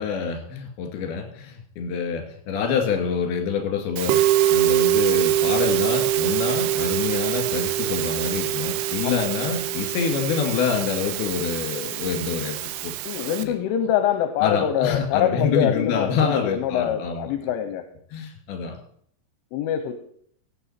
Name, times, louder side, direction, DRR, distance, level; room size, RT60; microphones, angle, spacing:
voice 1, 0.0-4.2 4.5-13.6 13.8-13.9 14.4-17.3 18.1-18.8, left 6 dB, 60° left, 3 dB, 3.6 m, -27 dB
Musical instrument, 4.0-13.4, right 13 dB, 90° right, 3.4 m, -24 dB
voice 2, 13.1-17.8 19.5-19.9, left 9 dB, 80° left, 8 dB, 3.1 m, -24 dB
16.5 x 9.1 x 4.3 m, 0.64 s
omnidirectional pair, 5.8 m